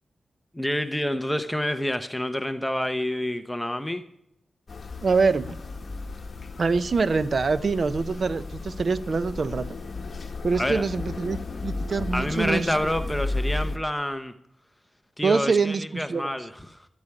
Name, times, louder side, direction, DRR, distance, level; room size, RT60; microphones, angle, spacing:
voice 1, 0.5-4.0 10.6-10.8 12.1-14.3 15.2-16.9, left 1 dB, 5° left, 9 dB, 0.8 m, -28 dB
sound 1, 4.7-13.8, left 3 dB, 45° left, 1.7 m, -34 dB
voice 2, 5.0-5.6 6.6-9.7 10.4-11.4 11.6-12.7 15.2-16.4, right 4 dB, 50° right, 14 dB, 0.7 m, -24 dB
12.5 x 8.2 x 9.8 m, 0.77 s
wide cardioid pair, 105°, 0 cm